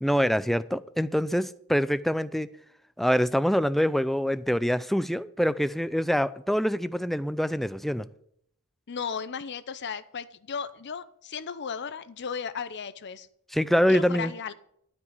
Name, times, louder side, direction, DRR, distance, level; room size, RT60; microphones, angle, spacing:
voice 1, 0.0-2.5 3.0-8.1 13.5-14.3, equal, ahead, 0.3 m, -25 dB
voice 2, 8.9-13.3 13.9-14.5, left 6 dB, 50° left, 0.6 m, -35 dB
12.0 x 5.4 x 8.1 m
head